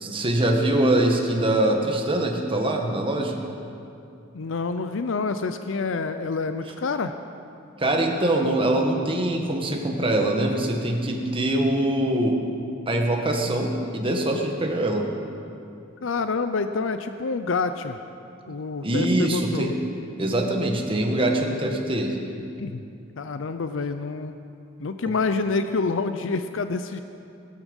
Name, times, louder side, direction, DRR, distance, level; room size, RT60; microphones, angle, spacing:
voice 1, 0.0-3.4 7.8-12.4 12.9-15.1 18.8-19.7 20.2-22.2, right 1 dB, 25° right, 1 dB, 1.6 m, -23 dB
voice 2, 4.3-7.1 16.0-18.0 18.5-19.7 22.6-22.8 23.2-24.4 24.8-27.0, left 4 dB, 70° left, 9 dB, 0.6 m, -27 dB
16.5 x 13.5 x 5.5 m, 2.6 s
head